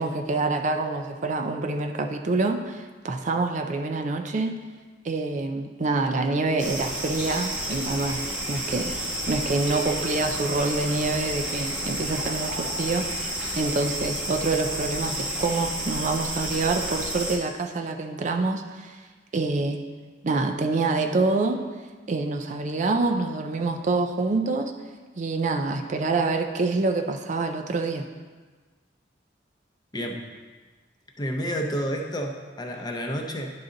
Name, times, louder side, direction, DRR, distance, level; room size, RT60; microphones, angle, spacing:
voice 1, 0.0-4.6 5.0-19.0 19.3-19.8 20.2-21.6 22.1-24.7 25.2-28.1, right 3 dB, 45° right, 5 dB, 0.4 m, -26 dB
sound 1, 6.6-17.4, right 1 dB, 5° right, 1.1 m, -31 dB
voice 2, 31.2-33.5, equal, 25° left, 2 dB, 0.7 m, -30 dB
11.0 x 3.9 x 3.9 m, 1.4 s
head